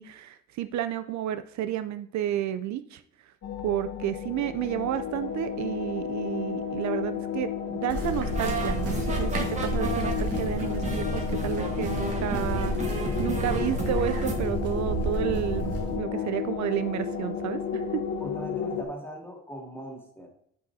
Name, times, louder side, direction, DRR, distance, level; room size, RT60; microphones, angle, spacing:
voice 1, 0.0-3.0 3.6-18.0, right 11 dB, 70° right, 11 dB, 0.5 m, -31 dB
sound 1, 3.4-18.8, left 8 dB, 65° left, 1.2 m, -33 dB
sound 2, 7.9-16.0, right 1 dB, 50° right, 2.0 m, -31 dB
sound 3, 8.3-14.3, right 3 dB, 25° right, 1.5 m, -34 dB
voice 2, 16.0-16.4 18.2-20.3, equal, 10° left, 0 dB, 2.2 m, -40 dB
10.5 x 5.3 x 2.6 m, 0.69 s
cardioid pair, 90°, 30 cm